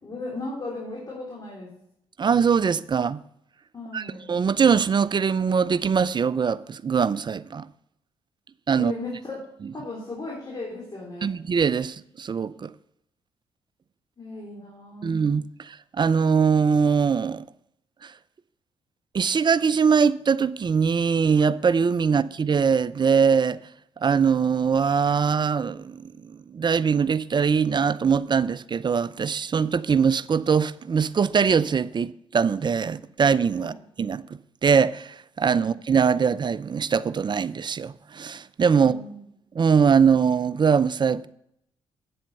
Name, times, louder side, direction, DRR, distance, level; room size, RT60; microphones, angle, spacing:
voice 1, 0.0-1.7 3.7-4.2 8.8-9.4 9.7-11.3 14.2-15.2 22.1-22.2 33.6-33.7 38.8-39.2, left 2 dB, 35° left, 3.6 m, -36 dB
voice 2, 2.2-3.2 3.9-7.7 8.7-8.9 11.2-12.7 15.0-17.4 18.0-18.1 19.1-23.6 24.0-26.0 26.3-33.7 34.0-34.2 34.6-38.9 39.5-41.3, right 6 dB, 40° right, 0.5 m, -22 dB
8.7 x 7.7 x 5.4 m
supercardioid pair, 55°, 12 cm